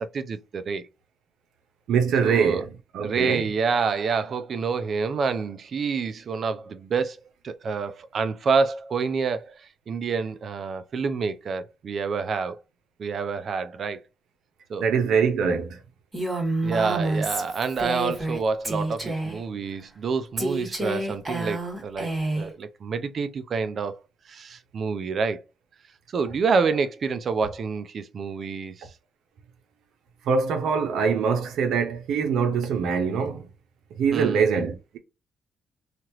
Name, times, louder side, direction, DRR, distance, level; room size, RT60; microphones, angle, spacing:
voice 1, 0.1-0.9 2.2-2.6 3.0-7.2 7.4-12.6 13.0-14.0 14.7-14.8 16.6-24.0 24.3-25.4 26.1-28.9 34.1-34.4, right 5 dB, 50° right, 0.5 m, -27 dB
voice 2, 1.9-3.5 14.8-15.8 30.3-33.4 33.9-35.0, right 6 dB, 80° right, 0.8 m, -23 dB
Female speech woman speaking, 16.1-18.4 18.6-19.4 20.4-22.5, right 2 dB, 25° right, 1.6 m, -28 dB
2.9 x 2.5 x 2.9 m
cardioid pair, 90°, 0 cm